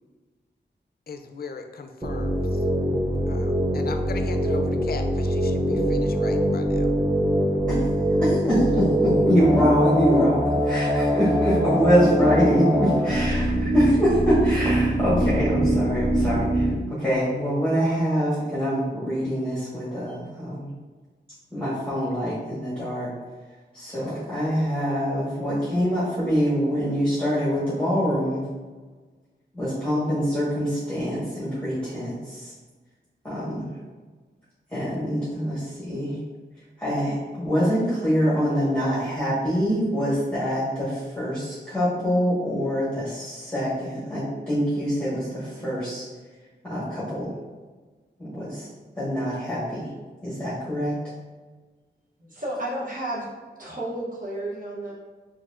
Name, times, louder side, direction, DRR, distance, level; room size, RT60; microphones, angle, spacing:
voice 1, 1.1-2.6 3.3-6.9, left 4 dB, 55° left, 6 dB, 0.4 m, -38 dB
sound 1, 2.0-16.8, equal, 15° right, 0.4 m, -23 dB
voice 2, 8.1-20.7 21.5-23.1 23.7-28.5 29.5-32.5 33.2-33.7 34.7-36.2 36.8-46.0 46.6-47.3 48.2-48.7 49.0-49.9 50.2-50.9, equal, 5° left, -11 dB, 1.3 m, -24 dB
voice 3, 52.2-53.3 53.6-54.9, right 1 dB, 45° right, -5 dB, 0.9 m, -32 dB
4.5 x 2.7 x 2.4 m, 1.4 s
wide cardioid pair, 100°, 19 cm